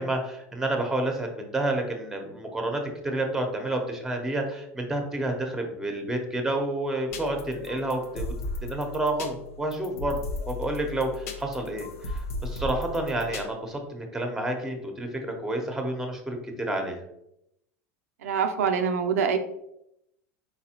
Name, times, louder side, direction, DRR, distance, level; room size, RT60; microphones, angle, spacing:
voice 1, 0.0-8.3 8.6-17.0, right 1 dB, 5° right, 3 dB, 0.9 m, -30 dB
sound 1, 7.1-13.5, left 3 dB, 85° left, 0.7 m, -36 dB
voice 2, 18.2-19.4, right 6 dB, 90° right, 6 dB, 0.5 m, -25 dB
4.2 x 3.9 x 2.9 m, 0.79 s
supercardioid pair, 110°, 8 cm